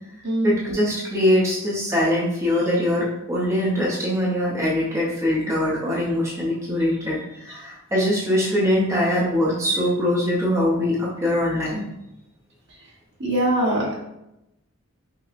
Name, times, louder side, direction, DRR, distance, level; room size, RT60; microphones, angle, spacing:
voice 1, 0.4-11.8, left 1 dB, 15° right, -6 dB, 0.7 m, -22 dB
voice 2, 13.2-13.9, right 1 dB, 60° right, -5 dB, 1.2 m, -22 dB
5.6 x 2.1 x 2.5 m, 0.87 s
head